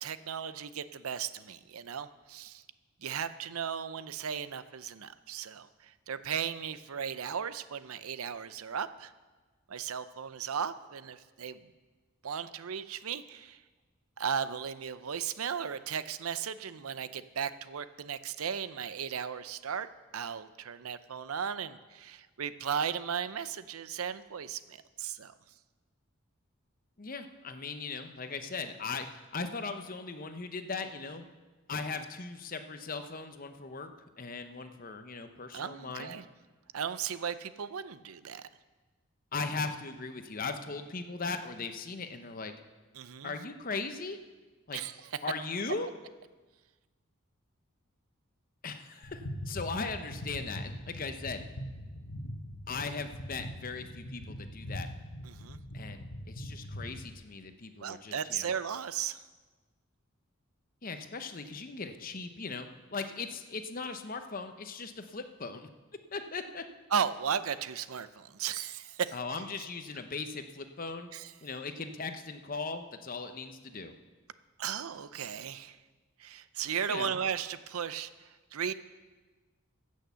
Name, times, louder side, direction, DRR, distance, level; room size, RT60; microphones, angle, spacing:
voice 1, 0.0-2.6 3.0-9.1 9.7-11.6 12.2-13.6 14.2-19.9 20.1-25.3 35.5-36.2 36.7-38.5 42.9-43.3 44.7-45.0 55.2-55.6 57.8-59.2 66.9-69.1 71.1-71.3 74.6-75.8 76.2-78.1 78.5-78.7, right 7 dB, 85° right, 14 dB, 0.6 m, -36 dB
voice 2, 27.0-31.2 31.7-33.9 34.2-36.2 39.3-42.5 43.2-44.2 44.7-44.8 45.2-45.9 48.6-51.4 52.7-54.9 55.7-58.5 60.8-65.7 66.1-66.6 69.1-71.1 71.4-73.9 76.9-77.2, left 4 dB, 40° left, 8 dB, 0.8 m, -38 dB
sound 1, 49.0-57.1, equal, 90° left, 1.2 m, -42 dB
15.5 x 6.4 x 6.9 m, 1.3 s
head